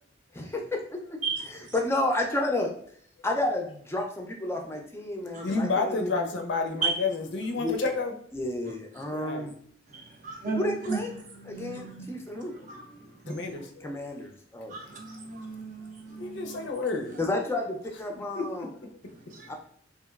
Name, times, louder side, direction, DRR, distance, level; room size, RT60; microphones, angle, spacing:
voice 1, 0.3-0.8 1.5-2.7 3.2-6.3 7.6-7.7 8.3-9.5 10.6-11.1 11.4-12.5 13.8-14.8 17.2-18.7 19.5-19.6, left 1 dB, 15° left, 0.4 m, -31 dB
voice 2, 5.4-8.1 9.1-9.5 13.3-14.0 16.2-17.2 18.1-19.1, left 3 dB, 75° left, 0.5 m, -31 dB
voice 3, 9.9-11.0 11.3-12.1 12.6-13.4 14.7-16.6 19.3-19.5, right 4 dB, 45° right, 0.6 m, -34 dB
2.9 x 2.5 x 2.3 m
head